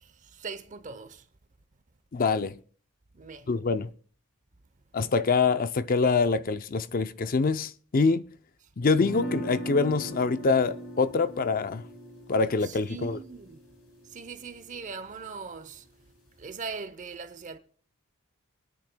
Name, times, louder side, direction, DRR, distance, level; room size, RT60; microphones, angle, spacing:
voice 1, 0.3-1.2 3.1-3.5 12.6-13.6 14.1-15.8 16.4-17.6, right 5 dB, 35° right, 0.7 m, -40 dB
voice 2, 2.1-2.6 3.5-3.9 4.9-8.2 8.8-11.8 12.3-13.2, left 4 dB, 40° left, 0.5 m, -25 dB
sound 1, 9.0-15.0, right 1 dB, 65° left, 4.2 m, -40 dB
26.0 x 10.5 x 2.2 m
head